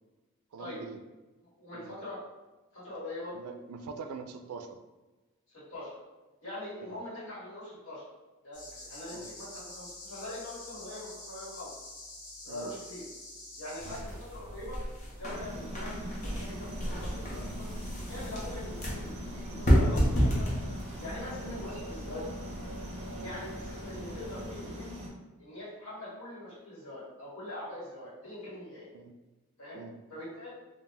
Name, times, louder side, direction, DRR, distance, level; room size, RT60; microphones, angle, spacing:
voice 1, 0.5-1.0 1.7-1.9 3.3-4.8 6.8-7.0 9.1-9.3 12.5-12.7 13.8-14.1 21.4-21.6 23.1-23.3 28.9-29.1 29.7-30.0, right 5 dB, 85° right, 8 dB, 0.3 m, -44 dB
voice 2, 1.6-2.2 2.7-3.3 5.5-6.0 6.4-8.0 8.4-11.7 12.4-13.0 13.6-14.8 15.2-17.7 18.1-20.5 21.0-22.3 23.2-24.9 25.4-28.9 29.6-29.8 30.1-30.5, left 1 dB, 65° left, -9 dB, 1.4 m, -42 dB
sound 1, 8.5-14.0, left 2 dB, 90° left, 0.8 m, -47 dB
sound 2, 13.8-24.6, equal, 35° left, 0.6 m, -32 dB
sound 3, 15.3-25.1, equal, 30° right, 0.5 m, -42 dB
2.4 x 2.1 x 3.3 m, 1.1 s
head